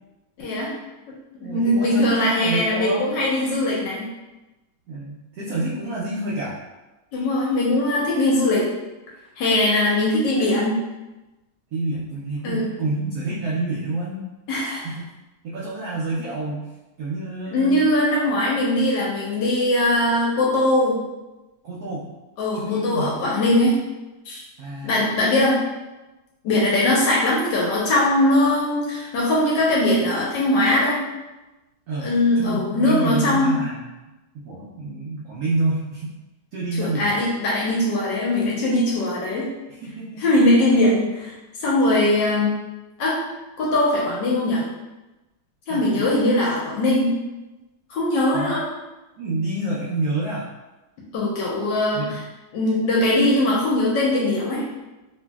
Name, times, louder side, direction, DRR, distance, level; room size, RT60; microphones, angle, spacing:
voice 1, 0.4-0.7 1.4-4.0 7.1-8.7 9.4-10.7 12.4-12.7 14.5-14.9 17.5-21.0 22.4-23.8 24.3-24.4 24.8-25.6 26.4-31.0 32.0-33.6 36.8-39.5 40.2-41.3 41.6-42.5 43.0-43.2 43.6-44.6 45.7-47.1 47.9-48.7 51.1-52.2 52.5-54.6, left 1 dB, 70° left, -5 dB, 1.1 m, -20 dB
voice 2, 1.4-3.1 4.9-6.6 11.7-14.2 14.8-15.1 15.4-16.7 17.0-17.8 21.6-22.1 22.5-23.1 24.6-25.0 31.9-33.9 34.3-36.1 36.5-37.2 39.7-40.2 45.7-46.3 48.3-48.5 49.2-50.5 51.9-52.2, right 2 dB, 85° right, -6 dB, 0.8 m, -28 dB
3.0 x 2.6 x 2.2 m, 1.1 s
omnidirectional pair, 2.3 m